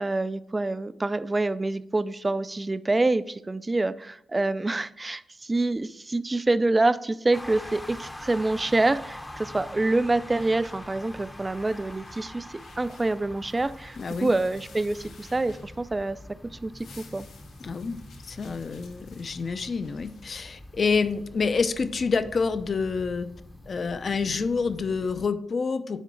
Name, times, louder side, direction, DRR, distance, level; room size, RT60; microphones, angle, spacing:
voice 1, 0.0-16.2 16.6-17.3, right 2 dB, 20° right, 14 dB, 0.4 m, -26 dB
sound 1, 7.3-25.3, left 1 dB, 10° left, 0.7 m, -44 dB
sound 2, 9.8-16.2 16.5-21.2, left 5 dB, 85° left, 1.2 m, -55 dB
voice 2, 14.0-14.3 17.6-23.3 23.7-26.0, left 4 dB, 45° left, 12 dB, 0.6 m, -28 dB
10.0 x 3.6 x 4.4 m, 0.76 s
cardioid pair, 100°, 0 cm